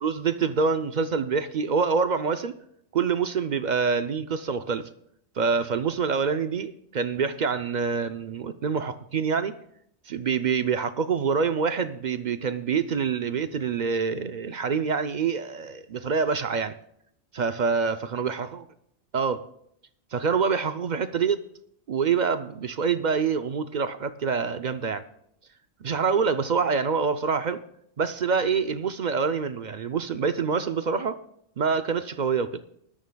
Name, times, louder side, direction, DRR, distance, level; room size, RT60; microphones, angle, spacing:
voice 1, 0.0-2.6 2.9-4.9 5.4-9.6 10.1-16.7 17.3-18.6 19.1-19.4 20.1-21.4 21.9-25.0 25.8-27.6 28.0-31.2 31.6-32.6, right 5 dB, 55° right, 0.5 m, -26 dB
20.5 x 13.0 x 2.3 m
omnidirectional pair, 1.3 m